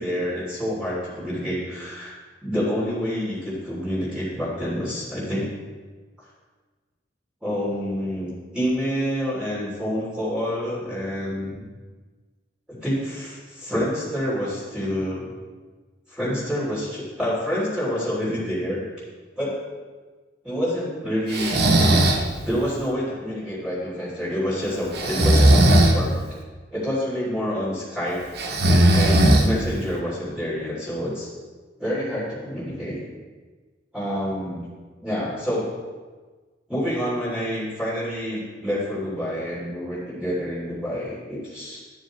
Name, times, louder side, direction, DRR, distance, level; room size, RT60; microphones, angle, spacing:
voice 1, 0.0-2.1 2.4-5.5 7.4-11.6 12.7-15.2 16.1-18.8 19.4-19.6 20.4-22.1 22.4-26.1 26.7-28.2 28.9-31.3 31.8-33.0 33.9-34.7 35.0-35.7 36.7-41.8, equal, 5° right, -9 dB, 3.0 m, -27 dB
Breathing, 21.3-22.3 24.9-26.0 28.4-29.8, right 1 dB, 60° right, 0.9 m, -17 dB
12.5 x 7.4 x 3.2 m, 1.4 s
head